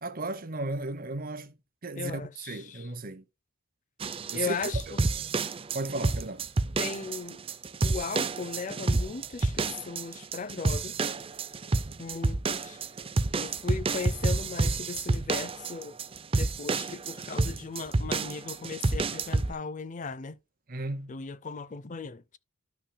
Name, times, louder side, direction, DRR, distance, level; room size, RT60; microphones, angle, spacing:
voice 1, 0.0-1.6 1.8-3.2 4.3-4.6 4.9-5.0 5.7-6.4 20.7-21.1, right 2 dB, 45° right, 0.8 m, -35 dB
voice 2, 2.0-2.9 4.3-5.0 6.8-7.4 7.8-11.0 12.0-12.8 13.4-15.9 16.4-20.4 21.1-22.4, left 5 dB, 35° left, 0.5 m, -37 dB
sound 1, 4.0-19.5, right 3 dB, 25° right, 0.5 m, -29 dB
12.5 x 5.9 x 2.2 m
head